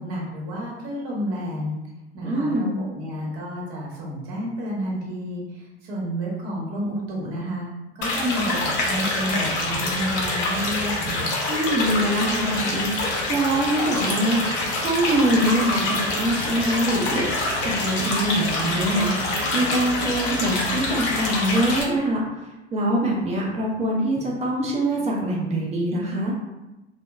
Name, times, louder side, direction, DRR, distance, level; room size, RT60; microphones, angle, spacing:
voice 1, 0.0-1.8 2.1-7.7 7.9-11.4, equal, 40° right, -4 dB, 1.0 m, -30 dB
voice 2, 2.2-2.8 11.5-22.2 22.7-26.3, right 1 dB, 20° right, -3 dB, 0.4 m, -24 dB
sound 1, 8.0-21.8, left 2 dB, 40° left, 0.7 m, -26 dB
2.7 x 2.1 x 2.2 m, 1.0 s
figure-of-eight pair, 80°, 34 cm